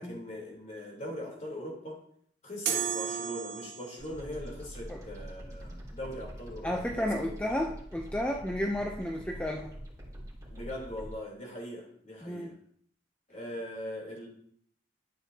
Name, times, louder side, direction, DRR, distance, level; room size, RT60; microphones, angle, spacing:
voice 1, 0.0-2.0 2.4-7.3 7.6-7.7 10.5-12.6 13.3-14.3, left 1 dB, 40° left, -2 dB, 3.5 m, -41 dB
sound 1, 2.7-4.2, right 8 dB, 60° right, 1.2 m, -33 dB
sound 2, 4.0-11.1, equal, 20° right, 2.7 m, -45 dB
voice 2, 6.6-9.7 12.2-12.5, left 1 dB, 5° left, 1 dB, 0.6 m, -32 dB
12.5 x 7.6 x 2.8 m, 0.65 s
head